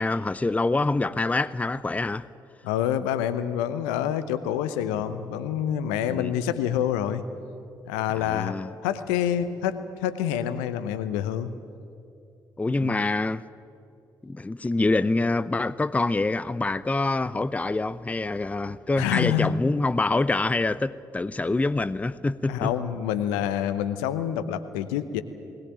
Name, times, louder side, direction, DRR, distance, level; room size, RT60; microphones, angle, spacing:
voice 1, 0.0-2.3 6.1-6.3 8.1-8.7 12.6-13.4 14.2-22.7, left 2 dB, 15° left, 0.5 m, -26 dB
voice 2, 2.6-7.2 7.9-11.5 12.8-13.0 18.7-19.5 22.5-25.2, left 10 dB, 75° left, 0.9 m, -27 dB
20.5 x 18.5 x 8.9 m
figure-of-eight pair, 40°, 10 cm